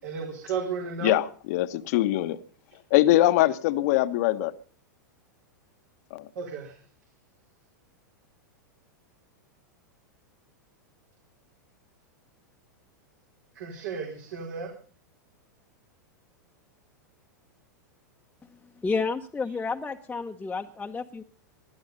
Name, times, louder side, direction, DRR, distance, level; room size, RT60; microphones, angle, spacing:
voice 1, 0.0-1.2 6.3-6.8 13.5-14.7, right 6 dB, 70° right, 4.5 m, -33 dB
voice 2, 1.0-2.4 2.9-4.5 6.1-6.3, left 15 dB, 55° left, 1.2 m, -22 dB
voice 3, 18.8-21.2, left 4 dB, 10° left, 1.1 m, -30 dB
20.5 x 12.5 x 5.4 m
hypercardioid pair, 105°, 10 cm